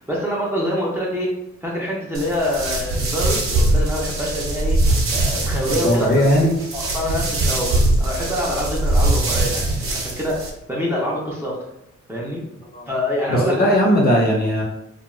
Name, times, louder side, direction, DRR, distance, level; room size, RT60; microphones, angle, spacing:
voice 1, 0.0-1.3 1.6-4.8 5.1-6.3 6.7-11.6 12.1-12.4 12.9-13.9, equal, 10° right, -5 dB, 0.5 m, -25 dB
sound 1, 2.1-10.5, right 2 dB, 50° right, 0.7 m, -22 dB
voice 2, 5.8-6.5 12.7-12.9 13.3-14.6, equal, 30° left, -2 dB, 0.7 m, -17 dB
2.3 x 2.2 x 3.0 m, 0.84 s
cardioid pair, 105°, 29 cm